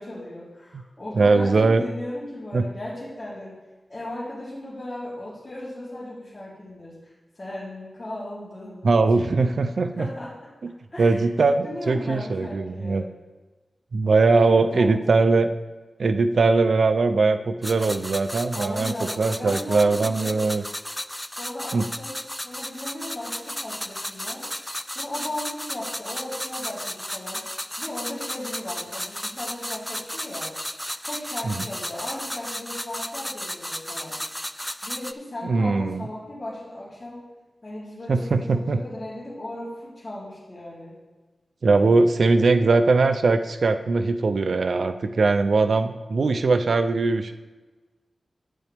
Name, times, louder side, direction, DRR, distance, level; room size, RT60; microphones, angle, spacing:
voice 1, 0.0-3.6 3.9-9.5 9.9-10.3 10.9-13.0 14.3-15.2 18.5-20.4 21.3-24.5 24.9-27.4 27.8-30.5 31.0-34.2 34.8-37.2 37.6-41.0 41.6-42.1, left 1 dB, 30° left, -10 dB, 3.2 m, -36 dB
voice 2, 1.2-1.8 2.5-2.6 8.8-10.1 11.0-11.5 11.9-13.0 13.9-15.5 16.0-20.6 21.7-21.8 31.5-31.6 35.4-36.0 38.1-38.8 41.6-47.3, right 3 dB, 75° right, 10 dB, 0.4 m, -20 dB
sound 1, 17.6-35.1, equal, 5° left, 0.3 m, -34 dB
9.3 x 9.2 x 3.5 m, 1.2 s
wide cardioid pair, 70°, 0 cm